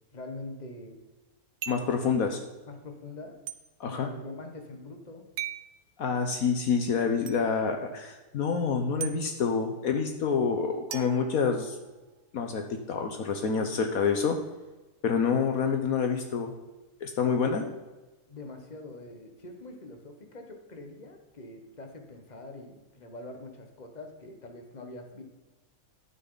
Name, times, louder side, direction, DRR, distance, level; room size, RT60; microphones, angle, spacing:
voice 1, 0.1-1.0 1.8-2.0 2.7-3.4 3.8-5.3 17.2-17.4 18.3-25.2, left 2 dB, 30° left, 4 dB, 1.5 m, -44 dB
sound 1, 1.6-2.0 3.5-3.6 5.4-5.7 7.3-7.4 9.0-9.2 10.9-12.0, right 10 dB, 85° right, 1.3 m, -38 dB
voice 2, 1.7-2.4 3.8-4.1 6.0-11.8 12.3-14.4 15.0-16.5 17.0-17.7, left 5 dB, 70° left, 5 dB, 1.4 m, -27 dB
11.5 x 9.6 x 4.0 m, 1.2 s
omnidirectional pair, 1.6 m